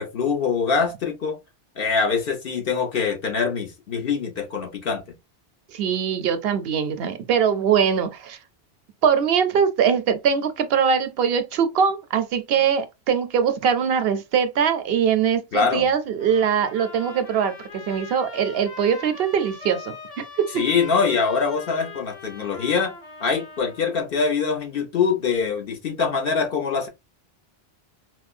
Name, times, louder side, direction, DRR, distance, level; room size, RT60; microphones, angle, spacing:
voice 1, 0.0-1.4 1.8-5.1 15.5-15.9 20.5-22.9 23.2-26.9, left 5 dB, 60° left, 1.1 m, -24 dB
voice 2, 5.7-8.4 9.0-20.2, right 7 dB, 70° right, 0.8 m, -22 dB
sound 1, 16.2-24.0, left 3 dB, 45° left, 1.4 m, -41 dB
4.2 x 2.2 x 2.4 m
omnidirectional pair, 1.1 m